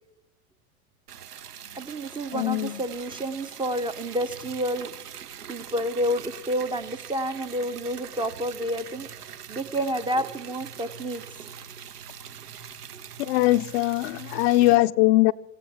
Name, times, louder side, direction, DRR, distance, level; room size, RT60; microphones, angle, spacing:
Liquid, 1.1-14.7, right 8 dB, 80° right, 0.9 m, -42 dB
voice 1, 1.7-4.9 5.5-9.1 9.5-11.2 12.9-13.0, equal, 10° right, 0.5 m, -29 dB
voice 2, 2.3-2.8 13.3-15.3, left 18 dB, 45° left, 0.5 m, -21 dB
24.5 x 16.0 x 3.4 m
hypercardioid pair, 90°, 45 cm